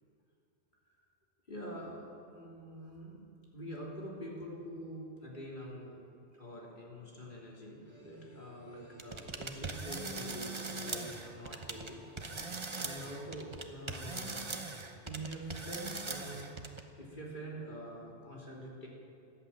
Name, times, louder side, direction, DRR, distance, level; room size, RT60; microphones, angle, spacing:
voice 1, 1.5-6.0 6.4-12.0 12.8-14.6 15.0-16.6 17.0-18.9, right 1 dB, 40° left, -3 dB, 3.2 m, -45 dB
sound 1, 7.8-14.8, right 2 dB, 10° right, 3.2 m, -59 dB
sound 2, 9.0-11.9 12.2-16.8, right 3 dB, 25° right, 0.9 m, -41 dB
14.5 x 11.5 x 8.7 m, 2.5 s
omnidirectional pair, 1.2 m